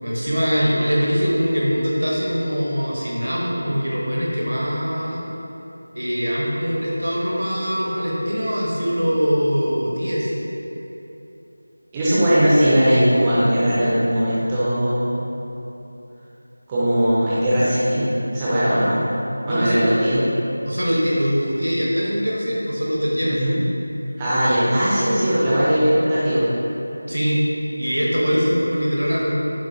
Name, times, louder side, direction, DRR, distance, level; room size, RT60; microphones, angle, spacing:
voice 1, 0.0-5.3 5.9-10.3 19.4-20.1 20.7-23.4 27.1-27.4 27.8-29.3, equal, 70° right, -4 dB, 1.0 m, -22 dB
voice 2, 11.9-15.1 16.7-19.0 19.5-20.2 23.3-23.6 24.2-26.5, equal, 10° right, -10 dB, 0.6 m, -19 dB
7.4 x 2.5 x 2.7 m, 3.0 s
figure-of-eight pair, 170°, 0 cm